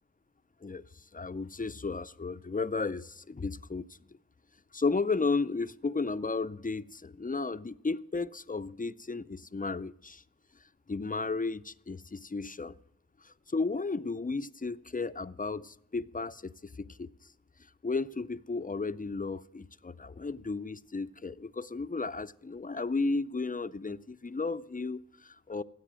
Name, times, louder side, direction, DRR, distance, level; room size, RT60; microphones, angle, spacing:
voice 1, 1.1-3.9 4.7-10.2 10.9-12.8 13.2-16.5 16.8-17.1 17.8-25.6, left 3 dB, 30° left, 0.4 m, -34 dB
15.0 x 8.3 x 6.1 m
wide cardioid pair, 40°, 31 cm